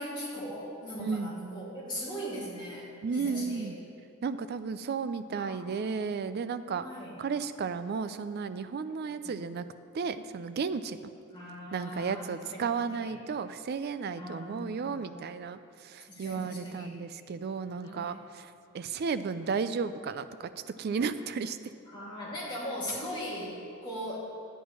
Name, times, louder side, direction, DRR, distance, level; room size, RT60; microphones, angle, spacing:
voice 1, 0.0-3.7 5.4-5.6 6.7-7.2 8.9-9.4 11.3-12.6 12.9-13.1 14.1-15.2 16.1-16.9 17.8-18.2 21.9-24.2, equal, 20° left, -7 dB, 2.2 m, -39 dB
voice 2, 1.0-1.3 3.0-3.7 4.2-6.8 7.2-9.7 9.9-11.0 11.7-20.5 20.8-21.6, right 5 dB, 50° right, 12 dB, 0.3 m, -33 dB
11.5 x 9.1 x 3.1 m, 2.4 s
head